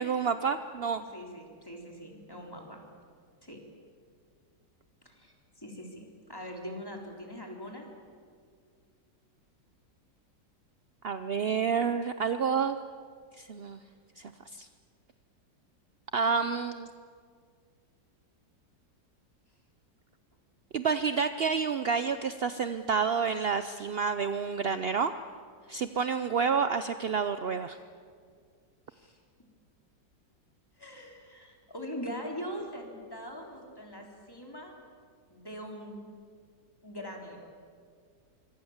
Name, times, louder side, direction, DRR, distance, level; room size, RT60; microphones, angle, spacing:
voice 1, 0.0-1.0 11.0-12.8 13.4-13.8 14.2-14.3 14.6-14.7 16.1-16.9 20.7-25.1 25.7-27.8, right 6 dB, 60° right, 10 dB, 0.6 m, -29 dB
voice 2, 1.1-2.8 3.4-3.6 5.0-7.9 28.9-29.2 30.8-34.8 35.3-36.0 36.8-37.5, equal, 10° left, 1 dB, 3.8 m, -42 dB
25.5 x 24.5 x 7.3 m, 2.1 s
omnidirectional pair, 1.9 m